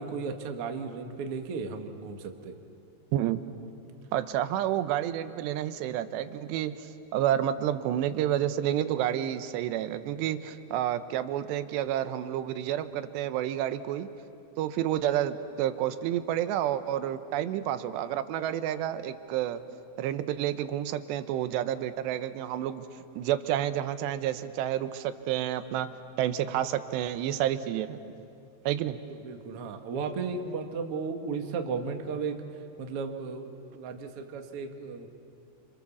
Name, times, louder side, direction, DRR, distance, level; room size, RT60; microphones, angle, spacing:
voice 1, 0.0-2.5 29.1-32.4 32.8-35.1, right 5 dB, 55° right, 4 dB, 1.7 m, -35 dB
voice 2, 4.1-14.1 14.6-19.6 20.0-22.9 23.2-25.9 26.2-28.0 28.7-29.0, right 11 dB, 85° right, 11 dB, 3.0 m, -29 dB
28.0 x 27.0 x 7.1 m, 2.7 s
omnidirectional pair, 4.9 m